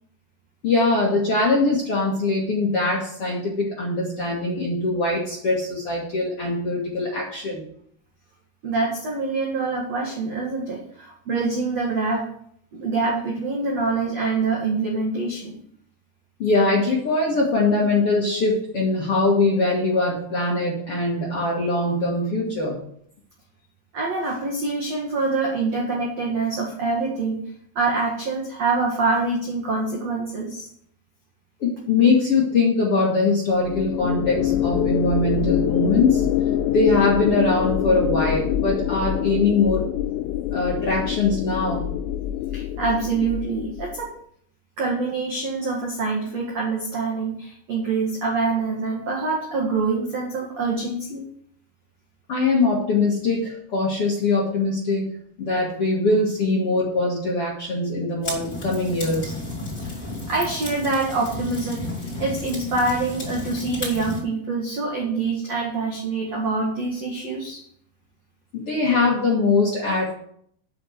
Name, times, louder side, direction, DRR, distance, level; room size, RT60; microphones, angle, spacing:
voice 1, 0.6-7.6 16.4-22.8 31.6-36.2 36.7-39.9 40.5-41.9 52.3-55.1 55.4-59.3 68.5-70.1, left 3 dB, 65° left, -3 dB, 1.4 m, -22 dB
voice 2, 8.6-12.3 12.7-15.6 23.9-27.5 27.7-30.7 42.5-44.1 44.8-51.2 59.8-60.0 60.3-61.9 62.2-67.6, right 3 dB, 80° right, -2 dB, 1.4 m, -25 dB
sound 1, 33.6-44.1, left 11 dB, 90° left, 3.1 m, -25 dB
sound 2, 58.2-64.2, left 2 dB, 20° left, 4.7 m, -33 dB
8.8 x 5.8 x 8.0 m, 0.66 s
omnidirectional pair, 5.7 m